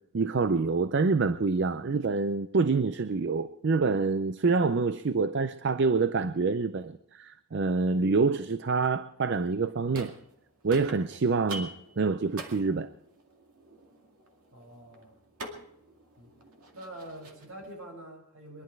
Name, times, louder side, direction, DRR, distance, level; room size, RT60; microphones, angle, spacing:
voice 1, 0.1-10.1 10.6-12.9, right 4 dB, 50° right, 0.5 m, -26 dB
sound 1, 9.6-10.4 10.7-17.7, right 2 dB, 90° right, 2.3 m, -46 dB
voice 2, 14.5-15.2 16.2-16.3 16.7-18.6, right 1 dB, 70° right, 6.7 m, -45 dB
23.0 x 11.5 x 4.6 m
head